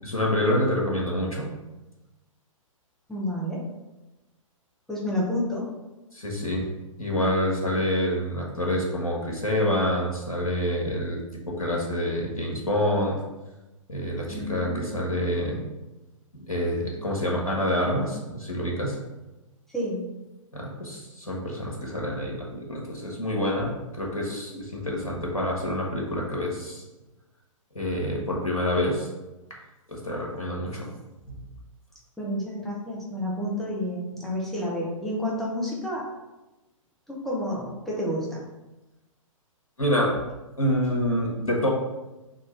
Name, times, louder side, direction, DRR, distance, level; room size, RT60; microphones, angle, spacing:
voice 1, 0.0-1.5 6.1-6.7 7.0-11.2 11.5-13.2 13.9-15.6 16.3-19.0 20.5-26.8 27.7-29.1 29.5-29.6 29.9-30.9 31.3-31.4 39.8-40.2 40.6-41.7, left 1 dB, 90° left, -2 dB, 1.0 m, -27 dB
voice 2, 3.1-3.7 4.9-5.7 14.3-15.0 19.7-20.0 32.2-36.1 37.1-38.4, equal, ahead, -5 dB, 0.7 m, -30 dB
3.7 x 2.5 x 4.2 m, 1.1 s
figure-of-eight pair, 120°, 18 cm